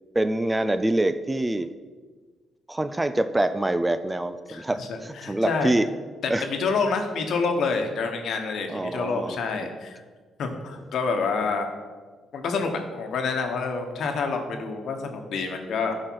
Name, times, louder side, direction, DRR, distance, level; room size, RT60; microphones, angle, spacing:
voice 1, 0.1-1.7 2.7-5.9 6.3-6.5 8.7-9.7, right 1 dB, 15° right, 11 dB, 0.4 m, -25 dB
voice 2, 4.5-5.7 6.2-10.0 10.4-11.7 12.3-16.0, left 4 dB, 70° left, 5 dB, 1.1 m, -28 dB
11.0 x 4.8 x 4.7 m, 1.4 s
cardioid pair, 90°, 0 cm